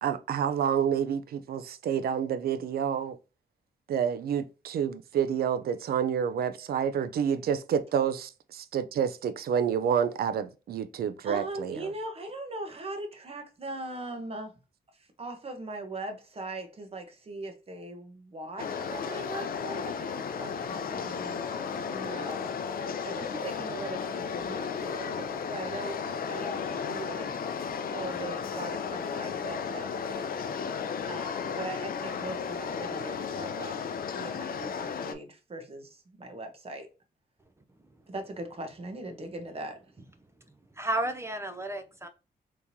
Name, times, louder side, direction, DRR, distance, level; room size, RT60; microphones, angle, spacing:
voice 1, 0.0-3.2 3.9-11.9, right 8 dB, 70° right, 0.5 m, -29 dB
voice 2, 11.2-14.5 15.2-22.5 23.0-27.3 27.9-30.5 31.1-36.9 38.1-40.1, right 2 dB, 35° right, 1.1 m, -40 dB
sound 1, 18.6-35.1, left 6 dB, 65° left, 0.5 m, -34 dB
voice 3, 40.8-42.1, right 1 dB, 15° right, 0.5 m, -32 dB
3.5 x 3.0 x 2.7 m
cardioid pair, 80°, 16 cm